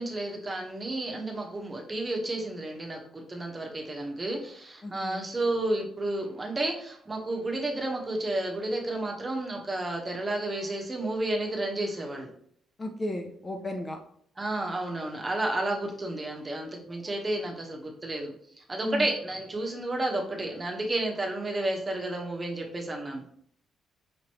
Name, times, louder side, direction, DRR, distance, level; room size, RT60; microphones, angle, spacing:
voice 1, 0.0-12.3 14.4-23.2, right 2 dB, 25° right, 0 dB, 1.1 m, -31 dB
voice 2, 4.8-5.2 12.8-14.0 18.8-19.1, left 1 dB, 25° left, 4 dB, 0.6 m, -34 dB
5.1 x 3.0 x 3.0 m, 0.63 s
cardioid pair, 90°, 0 cm